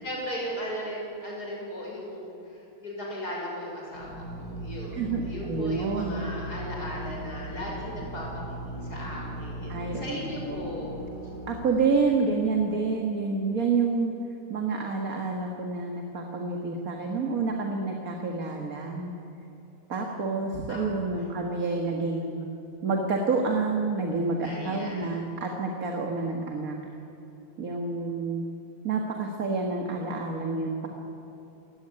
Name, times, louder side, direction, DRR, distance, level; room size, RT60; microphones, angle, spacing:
voice 1, 0.0-10.9 20.7-21.3 24.4-25.3, equal, 65° left, -3 dB, 6.6 m, -37 dB
Drill, 3.9-12.5, right 1 dB, 85° right, 4.7 m, -38 dB
voice 2, 4.9-6.3 9.7-10.2 10.5-10.6 11.5-14.1 14.5-19.1 19.9-22.4 22.8-26.8 27.6-28.4 28.8-30.9, right 4 dB, 55° right, 2 dB, 2.2 m, -28 dB
27.5 x 15.0 x 9.9 m, 3.0 s
omnidirectional pair, 1.8 m